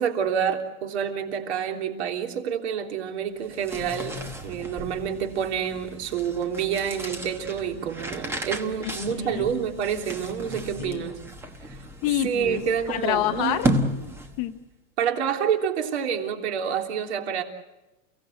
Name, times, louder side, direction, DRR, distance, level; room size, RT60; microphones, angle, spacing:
voice 1, 0.0-11.2 11.7-11.8 12.2-13.6 15.0-17.4, right 8 dB, 55° right, 3 dB, 3.4 m, -28 dB
sound 1, 3.4-14.6, right 1 dB, 5° right, 1.1 m, -34 dB
voice 2, 9.2-9.5 10.8-11.1 12.0-12.6 12.9-14.6, left 13 dB, 30° left, 8 dB, 0.8 m, -28 dB
29.5 x 16.5 x 8.0 m, 1.0 s
supercardioid pair, 170°, 40 cm